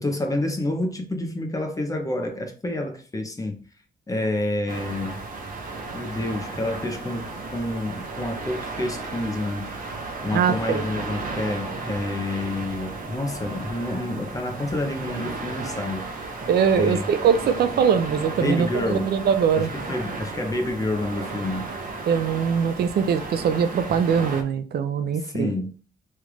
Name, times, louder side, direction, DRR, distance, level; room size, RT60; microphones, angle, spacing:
voice 1, 0.0-3.7 4.1-5.3 5.9-9.8 10.2-16.1 16.7-17.1 18.4-19.2 19.5-21.7 25.1-25.7, left 1 dB, 20° left, 0.7 m, -28 dB
sound 1, 4.7-24.4, right 3 dB, 60° right, 0.8 m, -34 dB
voice 2, 10.3-10.8 16.5-19.7 22.1-25.5, right 7 dB, 80° right, 0.4 m, -22 dB
3.2 x 2.4 x 3.2 m
cardioid pair, 110°, 16 cm